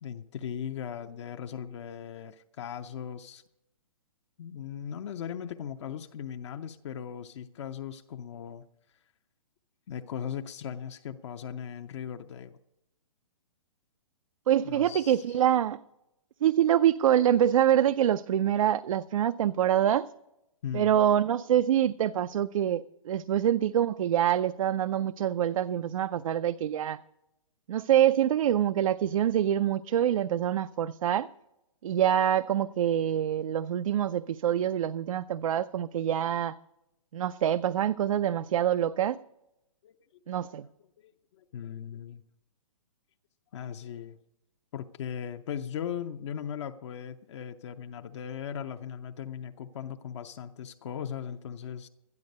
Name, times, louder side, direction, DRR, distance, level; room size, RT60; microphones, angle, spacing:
voice 1, 0.0-3.4 4.4-8.6 9.9-12.6 14.6-15.4 20.6-20.9 39.8-39.9 40.3-40.4 41.0-42.2 43.5-44.2 44.7-51.9, left 8 dB, 55° left, 0.7 m, -38 dB
voice 2, 14.5-15.8 16.4-20.1 20.7-27.0 27.7-31.3 31.8-36.5 37.1-39.2 40.3-40.7, right 10 dB, 70° right, 0.4 m, -25 dB
12.5 x 11.0 x 5.3 m
hypercardioid pair, 140°, 18 cm